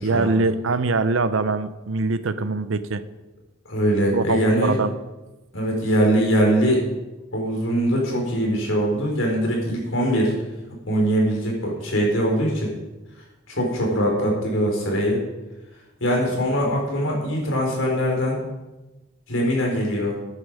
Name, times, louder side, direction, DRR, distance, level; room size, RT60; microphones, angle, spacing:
voice 1, 0.0-3.0 4.1-4.9, right 3 dB, 90° right, 12 dB, 0.7 m, -23 dB
voice 2, 3.6-4.8 5.5-6.8 7.3-10.3 10.9-12.7 13.5-15.2 16.0-18.4 19.3-20.2, equal, 90° left, -1 dB, 4.5 m, -22 dB
13.5 x 9.8 x 5.0 m, 1.1 s
head